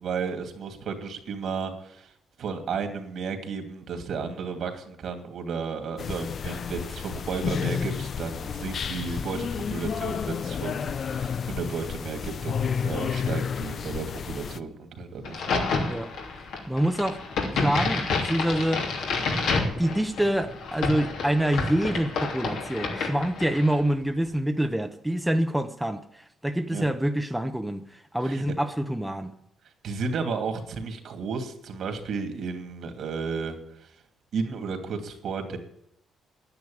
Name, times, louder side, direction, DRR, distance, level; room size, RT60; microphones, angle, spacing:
voice 1, 0.0-2.1 2.4-15.6 26.7-26.9 28.2-28.6 29.8-33.9 34.3-35.6, right 5 dB, 65° right, 2.7 m, -33 dB
sound 1, 6.0-14.6, left 7 dB, 50° left, 0.6 m, -31 dB
Crack, 15.2-23.8, left 3 dB, 80° left, 3.1 m, -29 dB
voice 2, 16.7-17.2 17.5-18.9 19.8-29.4, right 1 dB, 5° right, 0.9 m, -26 dB
10.5 x 9.7 x 8.8 m
cardioid pair, 90°, 0 cm